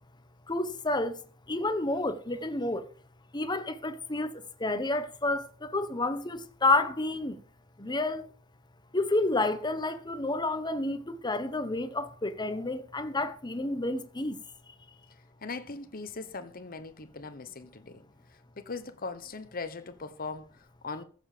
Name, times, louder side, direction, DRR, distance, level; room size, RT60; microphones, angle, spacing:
voice 1, 0.5-1.2 1.5-2.9 3.3-7.4 7.8-8.3 8.9-14.4, left 2 dB, 20° left, 1.1 m, -30 dB
voice 2, 15.4-18.0 18.3-21.0, left 4 dB, 45° left, 1.1 m, -40 dB
14.5 x 7.2 x 5.1 m
head